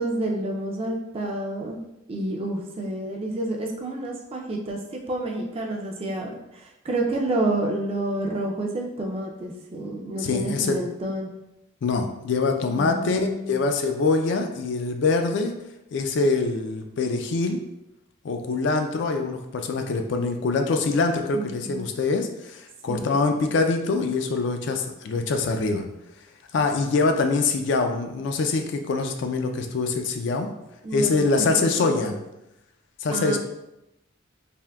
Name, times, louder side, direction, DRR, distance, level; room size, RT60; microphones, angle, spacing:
voice 1, 0.0-1.8 2.1-11.3 12.6-13.6 21.3-21.9 22.9-23.1 30.8-32.1 33.1-33.4, right 2 dB, 30° right, 0 dB, 0.3 m, -29 dB
voice 2, 10.2-10.8 11.8-15.5 15.9-17.6 18.2-25.9 26.5-30.5 30.9-32.2 33.0-33.4, left 3 dB, 60° left, 5 dB, 0.3 m, -24 dB
3.5 x 2.6 x 2.2 m, 0.90 s
head